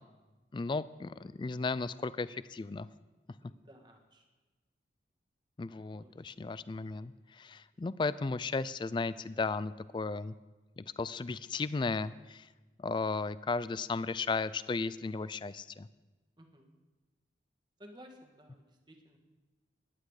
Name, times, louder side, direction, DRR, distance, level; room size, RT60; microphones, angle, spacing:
voice 1, 0.5-2.9 5.6-10.3 10.8-12.5 12.8-15.9, left 4 dB, 25° left, 17 dB, 0.3 m, -35 dB
voice 2, 3.4-4.2 6.0-6.1 16.4-16.7 17.8-19.2, equal, 25° right, 3 dB, 1.5 m, -56 dB
14.5 x 10.5 x 4.8 m, 1.2 s
head